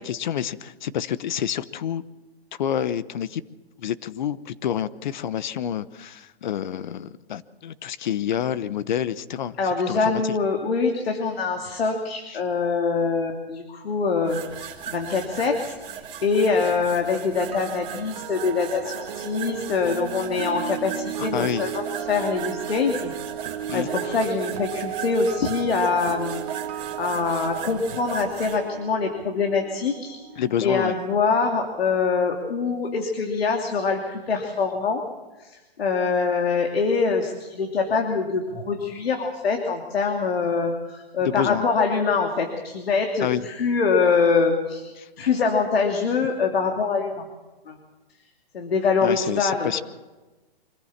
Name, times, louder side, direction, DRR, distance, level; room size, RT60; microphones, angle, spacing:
voice 1, 0.0-2.0 2.6-3.4 3.8-10.3 21.2-21.6 23.7-23.9 30.4-30.9 41.2-41.7 43.2-43.4 45.0-45.1 49.0-49.8, left 9 dB, 50° left, 16 dB, 1.0 m, -28 dB
voice 2, 9.6-15.8 16.2-23.1 23.7-26.4 26.7-30.2 30.6-35.0 35.4-47.2 47.7-47.8 48.5-49.8, left 4 dB, 75° left, 2 dB, 2.9 m, -24 dB
sound 1, 14.3-28.6, right 8 dB, 15° right, 2.4 m, -38 dB
sound 2, 17.3-31.4 31.6-31.9, right 10 dB, 40° right, 1.3 m, -35 dB
25.5 x 15.0 x 7.3 m, 1.2 s
hypercardioid pair, 165°, 30 cm